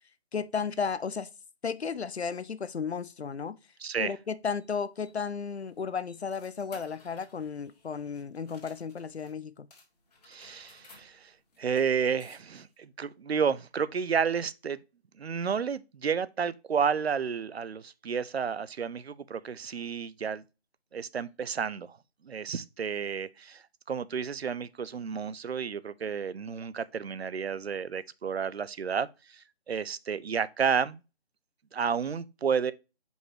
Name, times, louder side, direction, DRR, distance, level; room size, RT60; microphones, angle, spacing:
voice 1, 0.3-1.3 1.6-3.6 4.0-9.7, left 6 dB, 75° left, 0.6 m, -34 dB
voice 2, 3.8-4.1 10.3-11.3 11.6-14.8 15.2-20.4 20.9-22.0 22.2-23.6 23.9-31.0 31.7-32.7, right 6 dB, 70° right, 0.6 m, -31 dB
sound 1, 4.6-9.3 9.7-12.8, left 3 dB, 35° left, 1.8 m, -58 dB
6.4 x 5.3 x 3.0 m
figure-of-eight pair, 155°, 33 cm